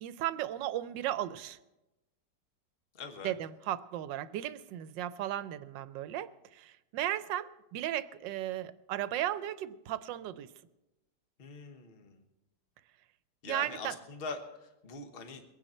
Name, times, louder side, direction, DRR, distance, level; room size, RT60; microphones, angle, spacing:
voice 1, 0.0-1.6 3.2-10.5 13.5-14.0, right 12 dB, 90° right, 15 dB, 1.3 m, -35 dB
voice 2, 2.9-3.3 11.4-12.2 13.4-15.4, left 4 dB, 35° left, 6 dB, 1.3 m, -43 dB
23.0 x 9.3 x 4.3 m, 0.98 s
omnidirectional pair, 1.9 m